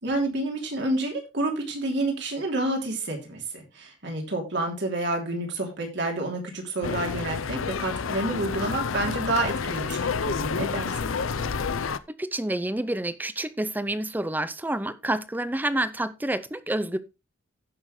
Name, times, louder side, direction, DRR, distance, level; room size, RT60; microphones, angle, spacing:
voice 1, 0.0-11.0, right 2 dB, 60° right, 3.1 m, -29 dB
sound 1, 6.8-12.0, left 5 dB, 85° left, 0.6 m, -29 dB
voice 2, 12.1-17.0, right 1 dB, 10° right, 0.6 m, -28 dB
16.0 x 6.2 x 3.2 m
head